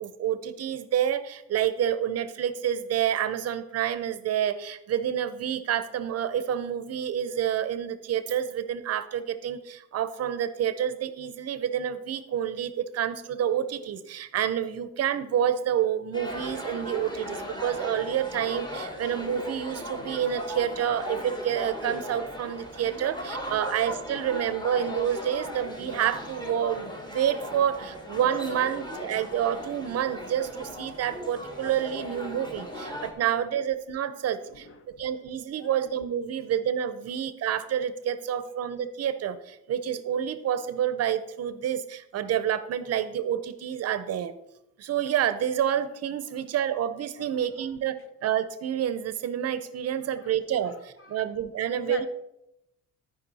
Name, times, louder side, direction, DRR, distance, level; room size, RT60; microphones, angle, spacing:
voice 1, 0.0-34.7 35.0-44.3 44.8-48.0 48.2-52.1, right 9 dB, 50° right, 13 dB, 0.6 m, -28 dB
sound 1, 16.1-33.1, left 1 dB, 15° left, 1.3 m, -38 dB
voice 2, 34.4-35.0 35.5-35.8 46.3-46.4 47.2-47.7 50.0-50.3 50.6-51.3 51.6-52.1, left 4 dB, 40° left, 9 dB, 0.8 m, -47 dB
13.0 x 5.1 x 4.1 m, 0.85 s
cardioid pair, 140°, 32 cm